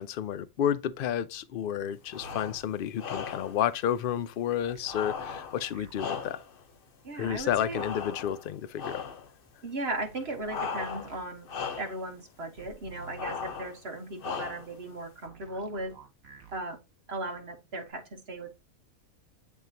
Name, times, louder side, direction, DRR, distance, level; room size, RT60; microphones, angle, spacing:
voice 1, 0.0-6.4 7.1-9.0, left 10 dB, 70° left, 0.5 m, -31 dB
sound 1, 2.1-2.6 3.0-3.6 4.8-6.6 7.7-8.5 8.8-9.3 10.5-11.2 11.5-12.0 13.2-13.8 14.2-14.8, left 6 dB, 45° left, 0.9 m, -37 dB
sound 2, 2.2-2.6 4.6-5.9 7.2-7.9 9.9-11.3 12.6-13.3 15.2-16.6 17.9-18.0, right 3 dB, 75° right, 2.1 m, -50 dB
voice 2, 7.0-7.8 9.6-11.5 11.8-15.9 16.5-16.8 17.1-18.5, right 2 dB, 50° right, 1.6 m, -37 dB
10.5 x 3.7 x 2.9 m
omnidirectional pair, 1.4 m